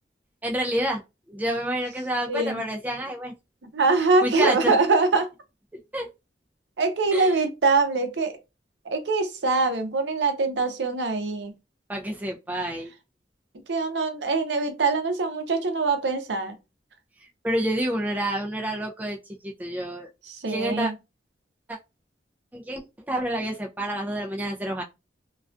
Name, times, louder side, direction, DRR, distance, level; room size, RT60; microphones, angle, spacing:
voice 1, 0.4-1.0 1.3-3.3 4.2-4.8 5.9-6.1 7.1-7.4 11.9-12.9 17.4-19.2 19.4-20.1 20.5-20.9 21.7-21.8 22.5-24.8, right 1 dB, 10° right, 0.3 m, -28 dB
voice 2, 2.3-2.6 3.7-5.3 6.8-8.3 8.9-11.5 13.7-16.6 20.3-20.9, right 3 dB, 80° right, 0.6 m, -23 dB
2.3 x 2.2 x 2.4 m
head